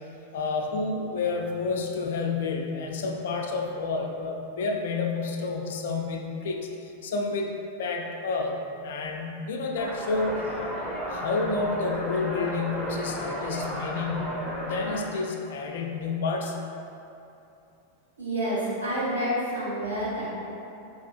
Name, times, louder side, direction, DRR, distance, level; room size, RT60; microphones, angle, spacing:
voice 1, 0.3-6.7 7.0-7.5 7.8-8.6 8.8-10.4 11.1-14.4 14.6-16.6, left 4 dB, 60° left, 2 dB, 0.4 m, -29 dB
sound 1, 9.8-15.0, right 1 dB, ahead, 0.7 m, -33 dB
voice 2, 18.2-20.2, right 1 dB, 80° right, -10 dB, 1.3 m, -28 dB
4.3 x 2.7 x 2.4 m, 2.8 s
figure-of-eight pair, 90°, 0 cm